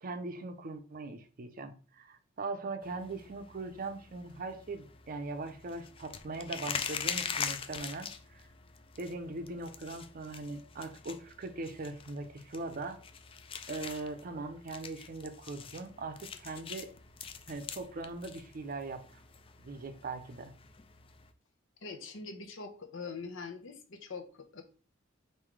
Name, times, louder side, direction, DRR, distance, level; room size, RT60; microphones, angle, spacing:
voice 1, 0.0-8.4 9.0-13.0 13.7-16.9 17.5-19.2 19.6-20.5, right 3 dB, 45° right, 8 dB, 0.5 m, -40 dB
sound 1, 2.8-21.3, left 6 dB, 25° left, 0.3 m, -44 dB
voice 2, 21.8-24.6, left 4 dB, 70° left, 6 dB, 0.8 m, -43 dB
3.8 x 2.6 x 4.6 m, 0.39 s
head